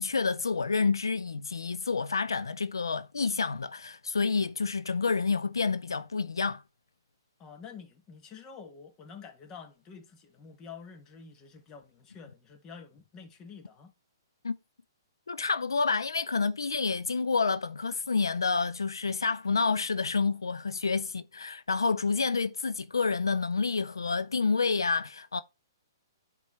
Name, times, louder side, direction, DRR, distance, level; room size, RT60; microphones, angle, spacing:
voice 1, 0.0-6.6 14.4-14.6 15.3-25.4, left 4 dB, 85° left, 0.4 m, -29 dB
voice 2, 7.4-13.9, left 6 dB, 25° left, 1.4 m, -48 dB
10.5 x 4.6 x 3.2 m
hypercardioid pair, 125°, 2 cm